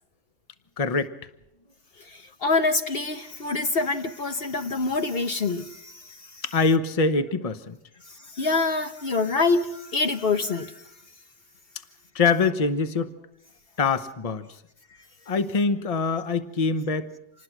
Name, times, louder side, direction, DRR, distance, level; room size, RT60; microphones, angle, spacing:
voice 1, 0.8-1.1 6.4-7.8 12.1-13.2 13.8-14.5 15.3-17.1, left 4 dB, 30° left, 1.0 m, -24 dB
voice 2, 2.0-6.4 8.1-10.8, left 3 dB, 55° left, 1.2 m, -26 dB
27.0 x 19.5 x 6.1 m
omnidirectional pair, 1.2 m